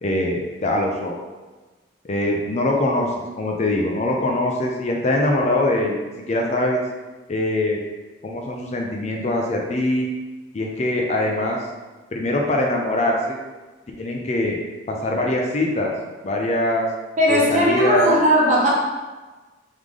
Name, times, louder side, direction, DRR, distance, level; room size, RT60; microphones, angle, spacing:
voice 1, 0.0-1.2 2.0-6.0 6.3-6.8 7.3-7.8 8.2-10.1 10.5-11.6 12.1-13.4 14.0-14.6 14.9-15.9 16.2-16.9 17.3-18.1, left 1 dB, 35° left, 0 dB, 0.5 m, -22 dB
voice 2, 17.2-18.7, equal, 40° right, -4 dB, 1.0 m, -17 dB
3.7 x 3.6 x 3.2 m, 1.2 s
head